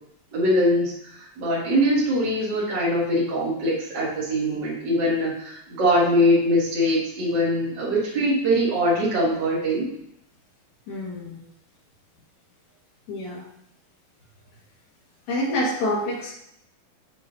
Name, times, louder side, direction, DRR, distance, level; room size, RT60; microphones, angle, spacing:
voice 1, 0.3-9.9, equal, 35° right, -8 dB, 2.8 m, -22 dB
voice 2, 10.9-11.4 13.1-13.5 15.3-16.3, left 1 dB, 65° left, -4 dB, 3.3 m, -27 dB
7.5 x 7.2 x 2.8 m, 0.74 s
omnidirectional pair, 3.7 m